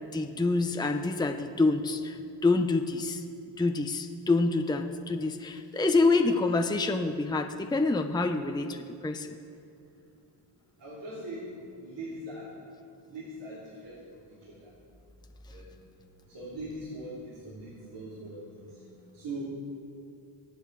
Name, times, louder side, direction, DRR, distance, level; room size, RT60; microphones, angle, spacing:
voice 1, 0.1-3.2 3.6-9.4, left 3 dB, 10° left, 5 dB, 0.8 m, -27 dB
voice 2, 10.8-12.5 13.1-14.7 15.5-15.7 16.3-18.7 19.1-19.4, right 1 dB, 65° right, -7 dB, 3.6 m, -41 dB
23.0 x 8.2 x 4.8 m, 2.5 s
cardioid pair, 75°, 46 cm